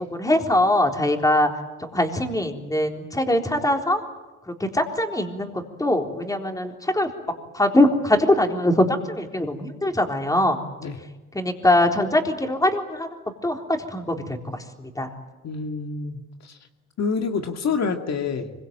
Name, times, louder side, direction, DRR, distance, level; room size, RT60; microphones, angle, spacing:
voice 1, 0.1-1.5 1.8-4.0 4.7-7.1 7.5-10.6 11.3-13.1 13.4-14.4 14.8-15.1, left 1 dB, 10° left, 3 dB, 3.8 m, -22 dB
voice 2, 15.4-16.6 17.0-18.5, left 5 dB, 60° left, 4 dB, 2.2 m, -27 dB
25.0 x 23.5 x 9.0 m, 1.1 s
cardioid pair, 90°, 30 cm